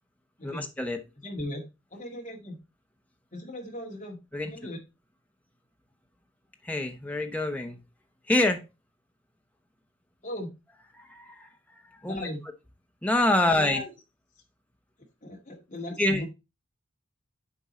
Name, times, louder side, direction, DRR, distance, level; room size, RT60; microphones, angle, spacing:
voice 1, 0.4-1.0 4.3-4.5 6.6-7.8 8.3-8.6 11.0-11.5 12.0-12.3 13.0-13.8 16.0-16.2, left 1 dB, 5° left, 4 dB, 0.8 m, -26 dB
voice 2, 1.2-1.6 1.9-2.6 3.3-4.2 4.4-4.8 10.2-10.5 12.0-12.4 13.4-13.9 15.2-16.3, left 1 dB, 35° left, 1 dB, 1.8 m, -37 dB
7.6 x 4.6 x 4.2 m, 0.26 s
head